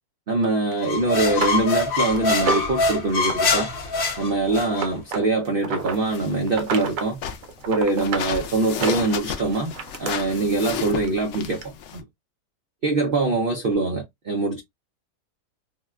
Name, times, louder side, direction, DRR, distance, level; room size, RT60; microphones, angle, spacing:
voice 1, 0.3-3.7 4.2-7.2 7.7-11.6 11.9-12.0 12.8-14.6, right 3 dB, 90° right, 0.4 m, -23 dB
sound 1, 0.7-0.8 1.3-2.8 3.2-3.6 3.9-6.0 6.5-7.1 7.4-8.3 8.7-10.1 11.1-11.2 11.6-11.7, right 5 dB, 65° right, 1.0 m, -30 dB
sound 2, 0.8-4.9, left 3 dB, 45° left, 0.8 m, -24 dB
sound 3, 5.8-12.0, left 8 dB, 75° left, 0.6 m, -34 dB
3.6 x 2.2 x 2.2 m
omnidirectional pair, 1.7 m